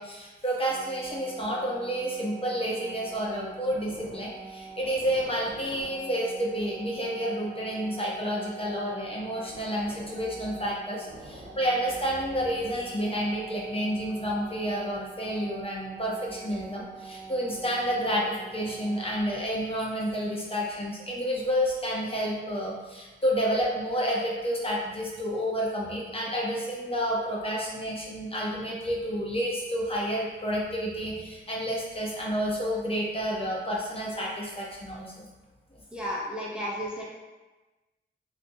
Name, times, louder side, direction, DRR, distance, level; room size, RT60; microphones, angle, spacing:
voice 1, 0.0-35.3, equal, 30° left, -4 dB, 0.8 m, -30 dB
sound 1, 0.7-19.2, right 4 dB, 75° right, 1.1 m, -44 dB
voice 2, 35.9-37.0, equal, 5° right, -5 dB, 0.7 m, -33 dB
3.3 x 2.7 x 2.6 m, 1.2 s
cardioid pair, 65°, 20 cm